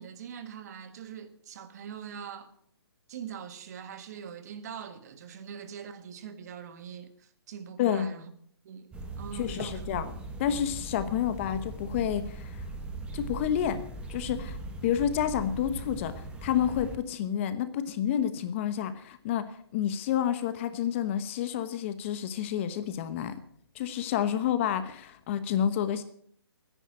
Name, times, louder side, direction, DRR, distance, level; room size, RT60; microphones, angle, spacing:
voice 1, 0.0-2.5 3.1-8.3 8.6-9.9 11.1-11.2, right 8 dB, 40° right, 1.5 m, -43 dB
sound 1, 8.9-17.0, right 2 dB, 10° right, 1.4 m, -40 dB
voice 2, 9.4-10.1 10.4-12.6 13.1-13.8 14.1-19.5 19.7-23.4 23.7-26.0, left 9 dB, 30° left, 1.1 m, -29 dB
14.5 x 10.0 x 7.6 m
hypercardioid pair, 155°, 13 cm